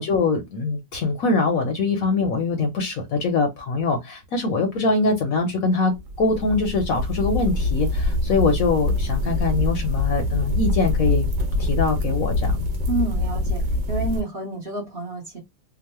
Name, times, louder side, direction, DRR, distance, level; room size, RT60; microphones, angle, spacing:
voice 1, 0.0-5.9 6.2-11.3 11.6-12.7, left 3 dB, 65° left, 0.9 m, -23 dB
sound 1, 6.0-14.2, left 2 dB, 80° right, 1.3 m, -24 dB
voice 2, 12.9-13.6 13.9-15.4, right 3 dB, 40° right, 1.0 m, -29 dB
2.9 x 2.1 x 2.9 m
omnidirectional pair, 1.9 m